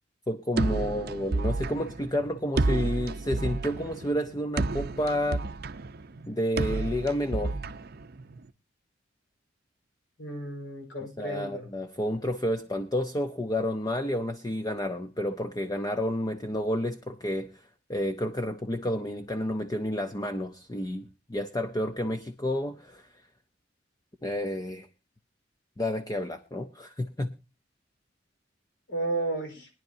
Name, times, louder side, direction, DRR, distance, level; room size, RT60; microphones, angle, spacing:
voice 1, 0.3-5.4 6.3-7.5 11.0-23.1 24.2-24.9 25.8-27.3, left 1 dB, 20° left, 8 dB, 0.6 m, -30 dB
sound 1, 0.6-8.5, right 3 dB, 55° right, 0.6 m, -31 dB
voice 2, 10.2-11.7 28.9-29.7, right 2 dB, 70° left, 3 dB, 4.5 m, -33 dB
22.0 x 10.5 x 2.6 m, 0.27 s
head